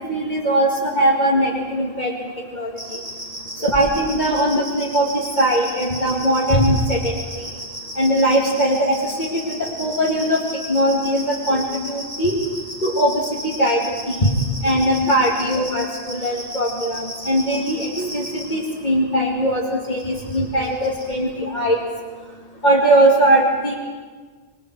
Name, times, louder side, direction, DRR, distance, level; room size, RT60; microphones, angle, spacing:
voice 1, 0.1-3.0 3.6-7.5 8.0-9.3 9.6-10.4 10.7-12.3 12.8-13.8 14.1-14.3 14.6-21.8 22.6-23.7, right 1 dB, 45° left, -5 dB, 2.6 m, -20 dB
sound 1, 2.8-18.4 19.8-20.4 20.6-21.0, equal, 80° right, 8.1 m, -33 dB
27.0 x 22.0 x 4.8 m, 1.5 s
omnidirectional pair, 1.1 m